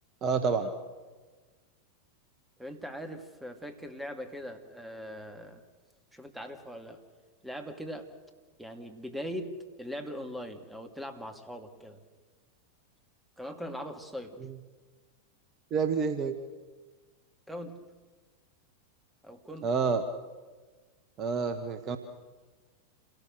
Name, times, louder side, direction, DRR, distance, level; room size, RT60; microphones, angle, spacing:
voice 1, 0.2-0.7 14.4-14.5 15.7-16.4 19.6-20.0 21.2-22.0, right 5 dB, 30° right, 9 dB, 1.4 m, -28 dB
voice 2, 2.6-5.6 6.1-7.0 7.4-8.1 8.6-12.0 13.4-14.5 17.5-17.9 19.2-19.8, equal, 5° right, 6 dB, 2.2 m, -41 dB
28.0 x 18.5 x 6.5 m, 1.3 s
figure-of-eight pair, 90°, 0 cm